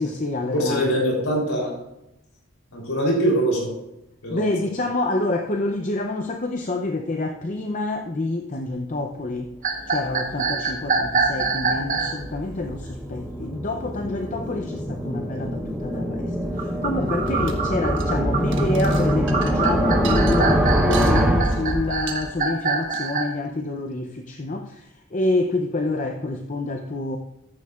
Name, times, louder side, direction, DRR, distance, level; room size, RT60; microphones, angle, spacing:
voice 1, 0.0-1.0 4.3-9.5 9.9-27.2, left 2 dB, 35° left, 4 dB, 0.6 m, -27 dB
voice 2, 0.5-1.7 2.7-3.7 4.2-4.4, right 1 dB, 85° left, -2 dB, 3.5 m, -22 dB
sound 1, 9.5-22.4, equal, 5° right, 0.8 m, -25 dB
sound 2, 9.6-12.2 16.6-23.3, right 4 dB, 35° right, 1.1 m, -25 dB
sound 3, 17.3-17.6 17.9-18.2 18.5-21.2 21.5-21.7 22.1-22.3 22.8-23.0, right 5 dB, 55° right, 1.4 m, -37 dB
14.5 x 11.0 x 2.4 m, 0.88 s
head